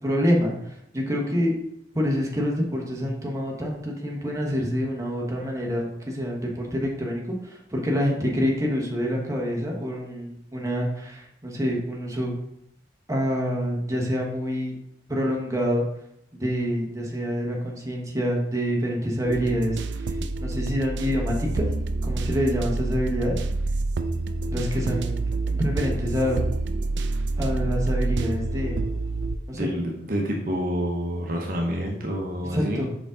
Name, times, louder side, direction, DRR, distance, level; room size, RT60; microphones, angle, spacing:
voice 1, 0.0-1.5 1.9-12.4 13.1-14.7 15.1-15.8 16.3-20.1 20.4-23.4 24.5-26.4 27.4-28.8 29.5-29.7 32.4-32.9, equal, 15° right, -1 dB, 1.1 m, -27 dB
sound 1, 19.2-29.4, right 2 dB, 80° right, 0.4 m, -27 dB
voice 2, 29.5-32.9, equal, 50° right, 1 dB, 0.9 m, -28 dB
5.2 x 4.9 x 3.7 m, 0.77 s
head